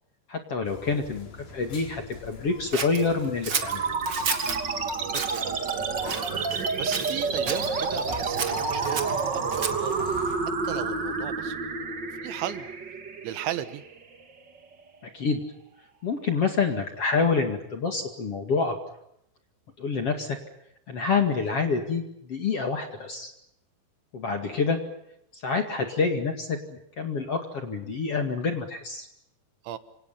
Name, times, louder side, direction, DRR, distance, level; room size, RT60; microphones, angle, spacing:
voice 1, 0.3-3.9 15.1-15.4 16.0-18.7 19.8-20.4 20.9-23.3 24.1-24.8 25.3-29.1, left 4 dB, 45° left, 5 dB, 2.4 m, -27 dB
sound 1, 0.6-10.4, left 4 dB, 65° left, 6.2 m, -45 dB
Scissors, 2.7-4.6 5.1-5.4 6.0-6.7 6.9-7.7 8.3-9.9, right 6 dB, 55° right, 1.2 m, -32 dB
sound 2, 3.6-14.6, right 4 dB, 40° right, 1.7 m, -29 dB
voice 2, 5.1-5.6 6.8-10.2 10.6-11.6 12.2-12.7 13.2-13.8 29.6-29.8, right 12 dB, 80° right, 12 dB, 3.7 m, -36 dB
29.0 x 26.5 x 5.7 m, 0.78 s
omnidirectional pair, 5.3 m